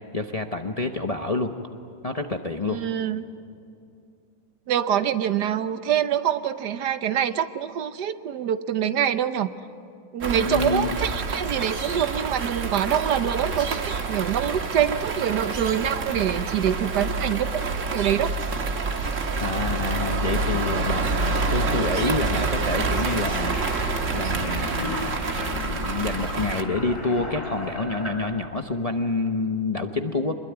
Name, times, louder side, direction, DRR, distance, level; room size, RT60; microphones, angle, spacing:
voice 1, 0.1-1.5 2.0-2.8 10.4-11.0 19.4-30.3, left 3 dB, 30° left, 4 dB, 0.8 m, -28 dB
voice 2, 2.7-3.2 4.7-9.5 10.1-18.4, right 9 dB, 75° right, 11 dB, 1.4 m, -25 dB
sound 1, 10.2-26.6, right 3 dB, 50° right, 1.6 m, -27 dB
sound 2, 18.9-28.6, left 1 dB, 65° left, 5.9 m, -36 dB
25.0 x 21.5 x 9.5 m, 2.5 s
omnidirectional pair, 1.9 m